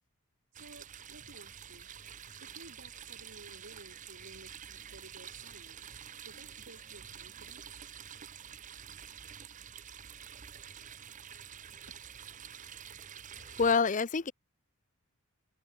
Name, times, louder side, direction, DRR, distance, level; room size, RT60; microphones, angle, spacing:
sound 1, 0.5-13.8, right 8 dB, 35° right, 0.8 m, -48 dB
voice 1, 0.5-1.9 2.4-5.8 6.3-7.9 11.9-12.0 12.9-13.1, right 2 dB, 55° right, 4.6 m, -55 dB
voice 2, 13.6-14.3, left 5 dB, 35° left, 0.6 m, -26 dB
head